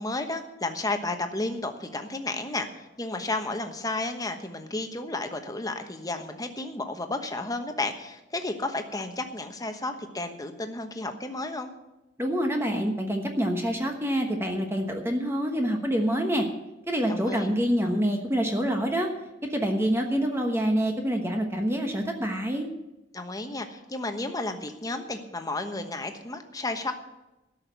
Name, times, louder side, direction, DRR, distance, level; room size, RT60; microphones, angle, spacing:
voice 1, 0.0-11.7 17.0-17.5 23.1-26.9, left 2 dB, 20° left, 6 dB, 1.1 m, -32 dB
voice 2, 12.2-16.5 16.9-19.1 19.4-22.7, equal, 15° right, 3 dB, 1.2 m, -26 dB
12.5 x 6.5 x 9.2 m, 0.97 s
head